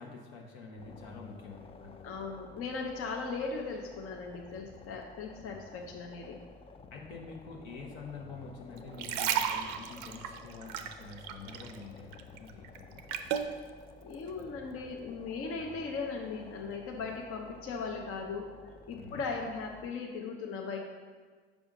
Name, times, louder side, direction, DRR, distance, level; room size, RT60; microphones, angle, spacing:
voice 1, 0.0-2.2 6.9-13.0 19.0-19.2, left 4 dB, 70° left, 0 dB, 1.1 m, -47 dB
sound 1, 0.8-19.9, left 4 dB, 20° left, 0.3 m, -53 dB
voice 2, 2.0-6.4 14.0-20.8, left 4 dB, 45° left, 1 dB, 0.7 m, -38 dB
sound 2, 8.8-11.8 12.1-13.5 14.1-14.3, right 9 dB, 65° right, 0.5 m, -34 dB
5.1 x 4.9 x 3.7 m, 1.5 s
hypercardioid pair, 65°, 32 cm